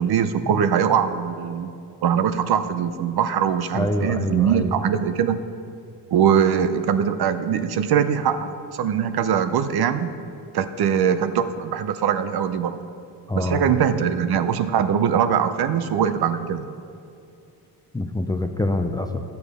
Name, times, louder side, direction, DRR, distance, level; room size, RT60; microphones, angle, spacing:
voice 1, 0.0-1.7 2.0-5.4 6.1-10.1 10.5-12.8 13.3-16.7, right 8 dB, 55° right, 11 dB, 0.6 m, -22 dB
voice 2, 3.7-4.8 13.3-13.7 17.9-19.2, left 1 dB, 10° left, 6 dB, 0.5 m, -25 dB
10.0 x 7.2 x 4.9 m, 2.5 s
cardioid pair, 90°, 44 cm